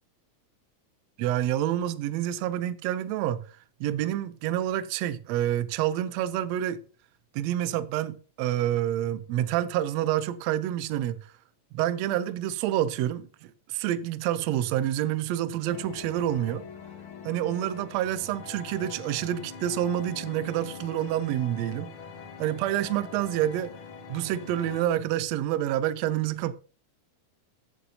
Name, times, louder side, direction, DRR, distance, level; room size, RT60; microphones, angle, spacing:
voice 1, 1.2-3.5 3.8-6.8 7.3-11.3 11.7-16.6 17.2-21.9 22.4-23.7 24.1-26.5, right 12 dB, 85° right, 1.5 m, -28 dB
sound 1, 15.7-24.8, left 6 dB, 60° left, 1.6 m, -43 dB
14.5 x 8.6 x 2.8 m
omnidirectional pair, 3.7 m